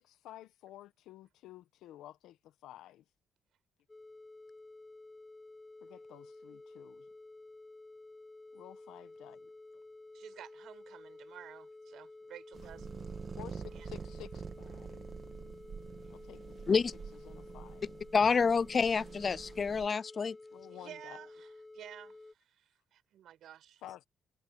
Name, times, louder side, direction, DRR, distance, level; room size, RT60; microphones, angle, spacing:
voice 1, 0.0-3.0 5.8-7.1 8.5-9.5 13.3-14.3 14.6-15.1 16.1-16.4 16.7-16.8 17.2-18.0 20.5-21.2 23.8-24.1, left 13 dB, 85° left, 1.1 m, -52 dB
sound 1, 3.9-22.3, left 2 dB, 20° left, 4.1 m, -52 dB
voice 2, 10.1-12.9 13.7-13.9 20.7-23.8, right 11 dB, 75° right, 6.8 m, -52 dB
sound 2, 12.5-19.9, right 6 dB, 45° right, 2.0 m, -46 dB
voice 3, 18.1-20.4, left 5 dB, 40° left, 0.5 m, -28 dB
cardioid pair, 90°, 0 cm